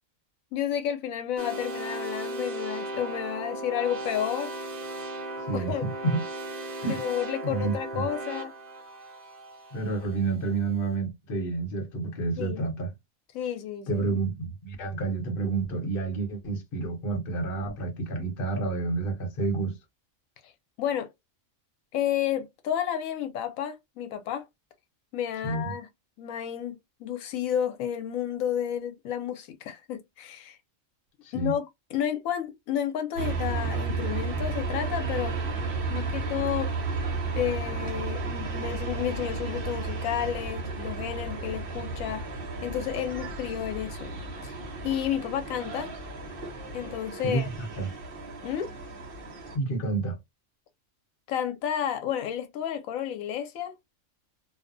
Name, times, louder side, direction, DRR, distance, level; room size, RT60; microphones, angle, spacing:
voice 1, 0.5-4.5 5.5-5.8 6.9-8.5 12.4-12.7 13.3-14.0 20.4-20.5 20.8-21.1 21.9-24.4 25.1-25.9 26.2-30.6 31.3-31.6 31.9-35.4 35.9-36.7 37.3-42.3 42.6-44.1 44.4-44.6 44.8-45.9 46.7-47.5 48.4-48.7 51.3-53.7, left 10 dB, 85° left, 1.0 m, -31 dB
sound 1, 1.4-10.3, right 1 dB, 90° right, 0.3 m, -36 dB
voice 2, 5.5-6.2 6.8-7.0 7.4-8.0 9.7-12.9 13.9-19.7 25.4-25.7 31.2-31.5 47.2-47.9 49.5-50.2, right 3 dB, 50° left, 0.9 m, -29 dB
sound 2, 33.2-49.6, right 3 dB, 50° right, 0.9 m, -33 dB
2.6 x 2.1 x 2.5 m
omnidirectional pair, 1.4 m